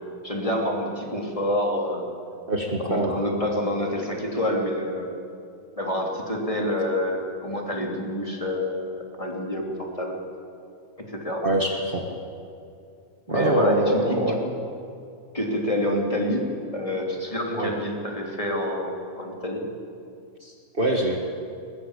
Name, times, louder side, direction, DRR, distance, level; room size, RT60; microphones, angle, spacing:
voice 1, 0.2-2.1 2.8-5.1 5.8-10.2 11.0-11.4 13.3-14.5 15.3-19.6, left 1 dB, 10° left, -1 dB, 2.9 m, -27 dB
voice 2, 2.4-3.2 11.4-12.0 13.3-14.4 17.5-17.8 20.4-21.2, right 1 dB, 60° right, 0 dB, 0.5 m, -24 dB
21.0 x 21.0 x 8.3 m, 2.5 s
omnidirectional pair, 4.0 m